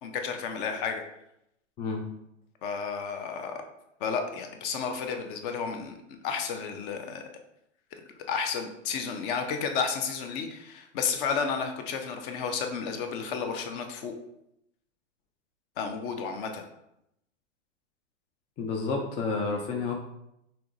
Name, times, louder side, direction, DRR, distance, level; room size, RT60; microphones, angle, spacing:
voice 1, 0.0-1.0 2.6-3.6 4.0-7.3 7.9-8.0 8.3-14.2 15.8-16.6, left 6 dB, 45° left, 5 dB, 0.8 m, -32 dB
voice 2, 18.6-19.9, left 4 dB, 20° left, 2 dB, 0.4 m, -30 dB
5.7 x 2.9 x 2.6 m, 0.81 s
hypercardioid pair, 115°, 37 cm